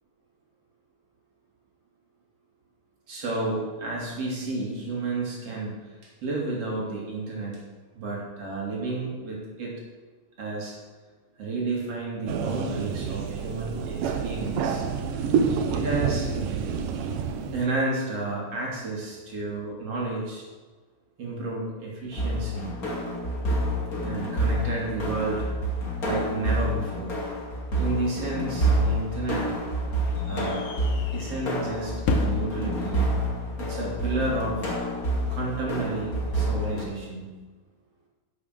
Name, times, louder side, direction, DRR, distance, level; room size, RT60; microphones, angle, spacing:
voice 1, 3.1-5.8 6.2-7.6 8.0-9.7 10.4-10.7 11.4-14.8 15.7-16.3 17.5-20.4 21.2-22.7 24.0-25.5 26.0-27.1 27.8-29.4 30.3-30.6 31.1-33.0 33.6-34.8 35.3-37.3, right 2 dB, 45° right, -3 dB, 3.5 m, -31 dB
sound 1, 12.3-17.7, right 6 dB, 90° right, 2.6 m, -28 dB
sound 2, 22.1-36.8, right 1 dB, 30° left, 2.4 m, -28 dB
sound 3, 29.7-34.8, left 7 dB, 80° left, 2.4 m, -38 dB
10.5 x 7.6 x 6.5 m, 1.3 s
omnidirectional pair, 3.8 m